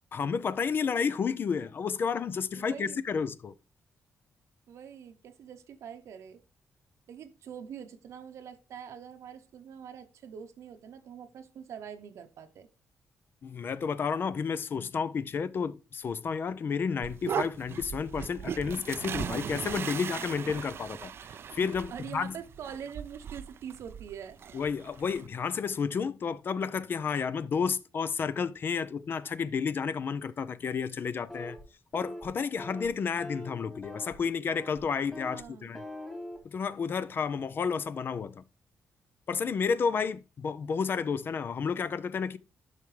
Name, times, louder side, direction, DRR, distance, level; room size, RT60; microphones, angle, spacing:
voice 1, 0.1-3.5 13.4-21.1 21.5-22.3 24.5-31.6 31.9-35.8 36.4-38.4 39.3-42.4, left 6 dB, 45° left, 0.4 m, -31 dB
voice 2, 2.6-3.0 4.7-6.4 7.1-12.7 21.9-24.4 35.3-35.7, right 8 dB, 70° right, 0.7 m, -44 dB
sound 1, 17.0-25.3, right 8 dB, 50° right, 0.3 m, -38 dB
sound 2, 31.3-31.6 31.9-32.3 32.6-32.9 33.2-34.1 34.5-34.8 35.1-35.4 35.7-36.4, left 1 dB, 10° left, 2.3 m, -42 dB
9.4 x 5.8 x 3.2 m
cardioid pair, 115°, 5 cm